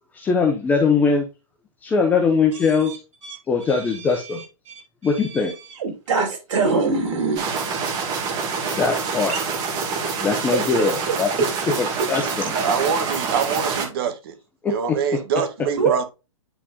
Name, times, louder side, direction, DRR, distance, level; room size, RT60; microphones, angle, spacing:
voice 1, 0.1-1.3 1.8-3.0 3.5-4.4 5.0-5.5 8.8-9.4 10.2-11.3 11.8-12.5 14.6-15.2, left 5 dB, 10° left, 0.8 m, -21 dB
voice 2, 3.7-4.7 5.0-5.5 5.8-7.5 9.3-9.4 12.5-12.7 15.8-16.0, right 4 dB, 65° right, 3.8 m, -25 dB
sound 1, 7.4-13.9, right 5 dB, 20° right, 1.7 m, -26 dB
voice 3, 12.6-14.3 14.7-16.0, right 7 dB, 45° right, 1.8 m, -24 dB
10.0 x 4.2 x 2.3 m
hypercardioid pair, 165°, 17 cm